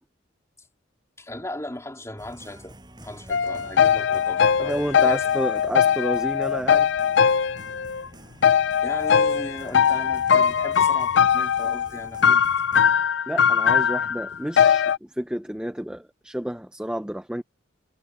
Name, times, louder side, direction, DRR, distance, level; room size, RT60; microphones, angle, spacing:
voice 1, 1.2-5.2 8.8-12.4, left 1 dB, 15° left, 3.5 m, -37 dB
sound 1, 2.2-12.8, right 1 dB, 20° right, 6.5 m, -47 dB
sound 2, 3.3-8.1 8.4-15.0, left 7 dB, 60° left, 0.4 m, -20 dB
voice 2, 4.6-6.9 13.3-17.4, equal, 5° right, 0.6 m, -30 dB
head